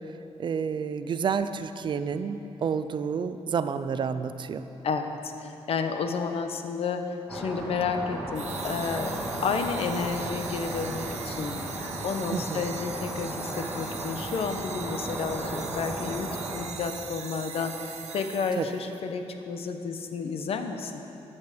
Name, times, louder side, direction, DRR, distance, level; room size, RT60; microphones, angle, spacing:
voice 1, 0.4-4.7 12.3-12.6 18.6-18.7, right 6 dB, 45° right, 11 dB, 0.5 m, -29 dB
voice 2, 4.8-9.2 9.4-17.8 18.1-20.9, left 5 dB, 60° left, 6 dB, 0.9 m, -31 dB
sound 1, 7.3-16.6, right 1 dB, ahead, 2.0 m, -35 dB
sound 2, 8.3-18.9, right 7 dB, 75° right, 1.0 m, -41 dB
14.5 x 10.0 x 5.1 m, 2.9 s
wide cardioid pair, 175°, 11 cm